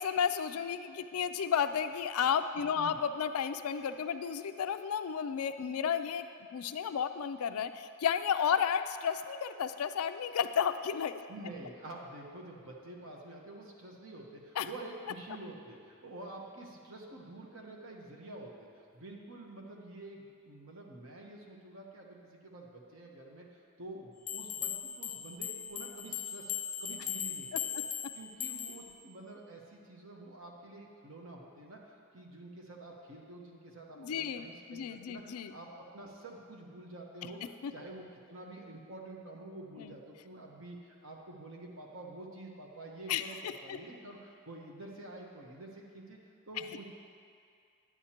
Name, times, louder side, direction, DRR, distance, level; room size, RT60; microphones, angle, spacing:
voice 1, 0.0-6.3 6.5-11.2 14.6-14.7 34.0-35.5 37.6-37.7 39.8-40.0 43.1-43.2 43.7-43.8, left 7 dB, 85° left, 10 dB, 0.4 m, -32 dB
voice 2, 2.6-3.0 5.7-5.9 11.3-27.8 28.1-37.4 37.7-46.2 46.5-46.9, right 2 dB, 65° right, -1 dB, 1.1 m, -48 dB
sound 1, 24.3-28.9, left 9 dB, 40° left, 0.5 m, -38 dB
10.5 x 8.5 x 2.9 m, 2.4 s
head